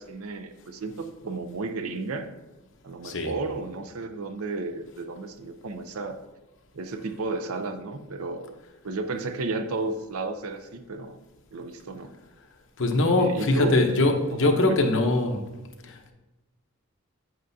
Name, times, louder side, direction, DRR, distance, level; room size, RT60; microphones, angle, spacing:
voice 1, 0.0-2.3 2.8-6.2 6.7-8.5 8.8-11.2 11.5-12.1 13.0-13.8 14.4-14.8, right 3 dB, 70° right, 8 dB, 0.6 m, -33 dB
voice 2, 12.8-15.5 15.8-16.1, left 2 dB, 55° left, 3 dB, 0.9 m, -22 dB
9.0 x 7.6 x 2.7 m, 1.1 s
head